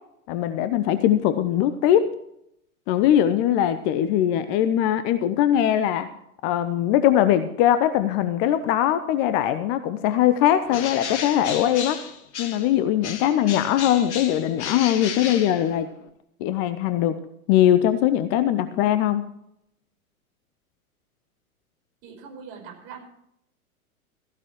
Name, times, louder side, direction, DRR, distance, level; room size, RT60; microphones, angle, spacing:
voice 1, 0.3-2.2 2.9-6.1 6.4-12.0 12.4-15.9 16.4-17.2 17.5-19.3, left 11 dB, 30° left, 12 dB, 0.7 m, -21 dB
Bird, 10.7-12.7 13.0-16.1, left 8 dB, 50° left, 1.7 m, -33 dB
voice 2, 22.0-23.0, right 6 dB, 45° right, 2 dB, 5.0 m, -41 dB
16.0 x 15.0 x 3.1 m, 0.76 s
figure-of-eight pair, 100°, 44 cm